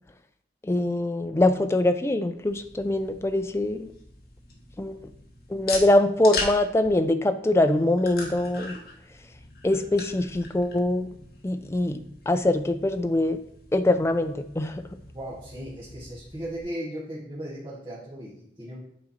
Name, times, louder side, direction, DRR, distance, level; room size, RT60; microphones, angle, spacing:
voice 1, 0.7-3.9 4.8-5.0 5.5-8.8 9.6-11.1 11.4-12.0 12.3-13.4 13.7-14.8, left 1 dB, 15° left, 9 dB, 0.3 m, -23 dB
sound 1, 2.3-16.6, left 3 dB, 55° left, 1.3 m, -40 dB
voice 2, 15.1-18.8, right 1 dB, 25° right, -11 dB, 1.6 m, -37 dB
8.5 x 3.8 x 4.3 m, 0.71 s
head